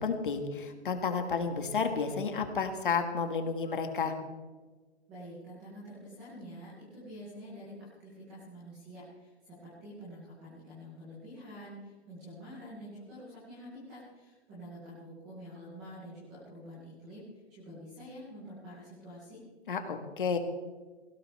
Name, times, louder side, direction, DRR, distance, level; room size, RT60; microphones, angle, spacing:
voice 1, 0.0-4.1 19.7-20.4, left 5 dB, 50° left, 6 dB, 1.8 m, -31 dB
voice 2, 5.1-19.4, equal, 5° right, -9 dB, 0.7 m, -47 dB
17.0 x 16.5 x 3.3 m, 1.3 s
hypercardioid pair, 180°, 32 cm